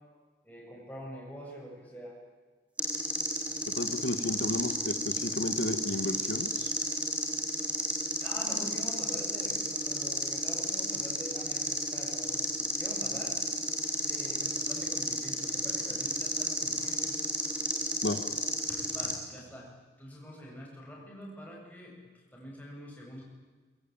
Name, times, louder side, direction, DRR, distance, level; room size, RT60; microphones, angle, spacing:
voice 1, 0.4-2.2 8.2-13.4 14.0-17.7 18.7-19.7 20.0-21.9 22.3-23.2, equal, 10° left, -3 dB, 7.8 m, -45 dB
sound 1, 2.8-19.1, right 1 dB, 5° right, 3.5 m, -32 dB
voice 2, 3.8-6.7 18.0-18.2, left 2 dB, 80° left, 9 dB, 1.6 m, -33 dB
23.0 x 22.5 x 9.0 m, 1.4 s
head